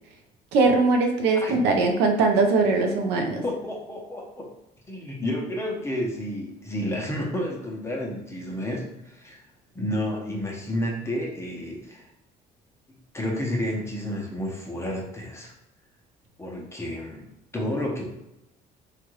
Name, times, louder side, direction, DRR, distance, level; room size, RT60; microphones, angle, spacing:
voice 1, 0.5-3.4, right 3 dB, 85° right, 3 dB, 0.6 m, -21 dB
voice 2, 1.4-1.8 3.4-4.5 4.9-9.4 9.7-12.1 13.1-15.5 16.4-17.3 17.5-18.1, left 1 dB, 15° left, -1 dB, 0.8 m, -31 dB
3.1 x 2.4 x 3.1 m, 0.89 s
cardioid pair, 110°, 17 cm